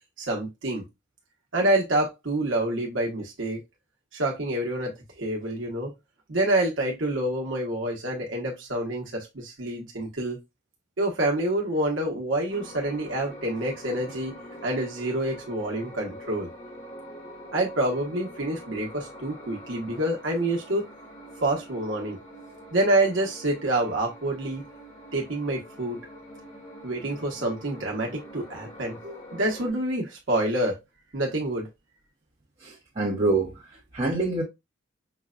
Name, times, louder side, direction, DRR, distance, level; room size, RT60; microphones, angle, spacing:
voice 1, 0.2-0.8 1.5-3.6 4.1-5.9 6.3-10.4 11.0-14.3 14.6-16.5 17.5-20.8 21.4-22.2 22.7-24.6 25.1-26.0 26.8-29.0 29.3-30.8 31.1-31.7, right 1 dB, 80° right, 1.0 m, -27 dB
sound 1, 12.5-29.7, equal, 35° left, 1.3 m, -45 dB
voice 2, 32.6-34.4, right 2 dB, 35° right, 0.9 m, -27 dB
5.8 x 2.2 x 2.4 m
head